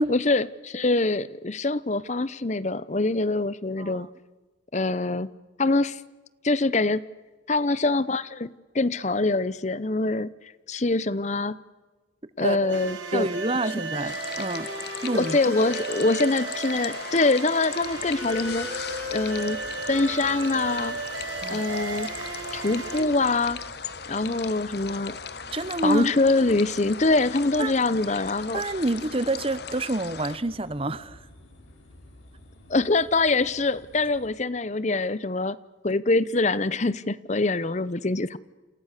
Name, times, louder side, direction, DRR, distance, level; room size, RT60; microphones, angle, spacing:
voice 1, 0.0-4.1 4.7-5.3 5.6-6.0 6.4-7.0 7.5-10.3 10.7-11.6 12.4-13.3 15.1-18.8 19.1-19.6 19.9-21.0 21.5-22.1 22.5-23.6 24.1-25.2 25.8-28.6 32.7-35.6 35.8-38.4, left 3 dB, 35° left, 0.8 m, -24 dB
voice 2, 3.8-4.1 12.4-12.8 13.1-14.7 15.0-15.4 21.4-21.6 25.5-26.1 27.6-27.7 28.5-31.3, right 2 dB, 30° right, 1.0 m, -27 dB
sound 1, 12.7-23.0, right 3 dB, 80° right, 6.9 m, -34 dB
sound 2, 14.1-30.4, left 6 dB, 55° left, 1.4 m, -38 dB
sound 3, 17.8-34.3, left 1 dB, 85° left, 7.2 m, -51 dB
29.5 x 28.5 x 6.7 m
head